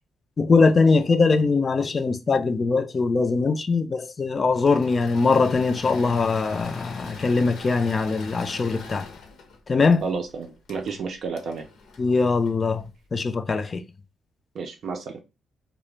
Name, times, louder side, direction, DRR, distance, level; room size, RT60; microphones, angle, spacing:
voice 1, 0.4-9.1 9.7-10.0 12.0-13.8, left 4 dB, 35° left, 0.4 m, -21 dB
Engine / Mechanisms, 4.5-12.9, left 4 dB, 70° left, 0.6 m, -42 dB
voice 2, 10.0-11.7 14.5-15.2, right 5 dB, 60° right, 0.4 m, -31 dB
2.3 x 2.0 x 3.2 m
cardioid pair, 90°, 0 cm